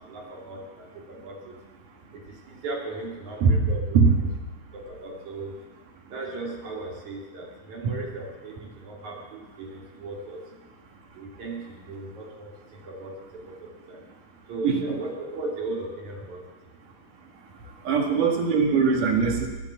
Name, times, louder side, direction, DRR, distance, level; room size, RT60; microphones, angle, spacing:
voice 1, 0.0-1.6 2.1-4.0 4.7-5.6 6.1-10.4 11.1-14.0 14.5-16.7, right 2 dB, 65° right, -2 dB, 4.2 m, -37 dB
voice 2, 17.9-19.5, right 5 dB, 90° right, 1 dB, 3.5 m, -20 dB
20.0 x 7.4 x 8.2 m, 1.2 s
omnidirectional pair, 3.6 m